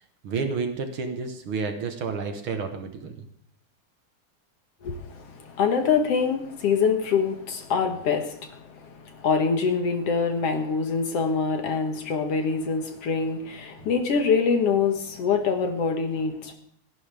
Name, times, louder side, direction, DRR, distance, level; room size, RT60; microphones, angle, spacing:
voice 1, 0.2-3.2, right 4 dB, 55° right, 6 dB, 1.7 m, -30 dB
voice 2, 4.8-16.5, left 5 dB, 60° left, 5 dB, 2.1 m, -25 dB
28.5 x 11.0 x 3.5 m, 0.64 s
omnidirectional pair, 3.5 m